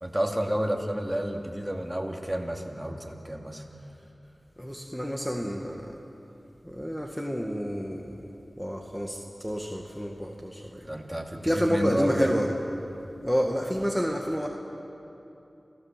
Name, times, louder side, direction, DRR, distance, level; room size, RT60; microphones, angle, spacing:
voice 1, 0.0-3.6 10.9-12.3, right 1 dB, 15° right, 1 dB, 2.7 m, -30 dB
voice 2, 4.6-6.0 6.6-8.3 8.6-10.9 11.4-12.5 13.2-14.5, equal, 5° left, 1 dB, 1.9 m, -29 dB
28.5 x 16.0 x 7.7 m, 2.9 s
wide cardioid pair, 45°, 0 cm